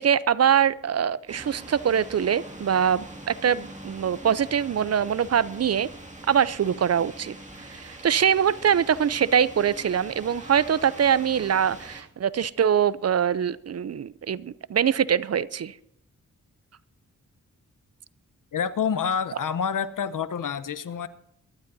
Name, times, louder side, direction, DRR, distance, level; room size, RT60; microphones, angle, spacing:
voice 1, 0.0-5.9 6.3-7.4 7.7-15.7, right 8 dB, 50° right, 19 dB, 0.5 m, -23 dB
sound 1, 1.3-12.0, right 1 dB, 20° right, 2.2 m, -43 dB
voice 2, 18.5-21.1, left 7 dB, 75° left, 13 dB, 0.8 m, -27 dB
23.0 x 12.5 x 2.7 m, 0.74 s
cardioid pair, 60°, 32 cm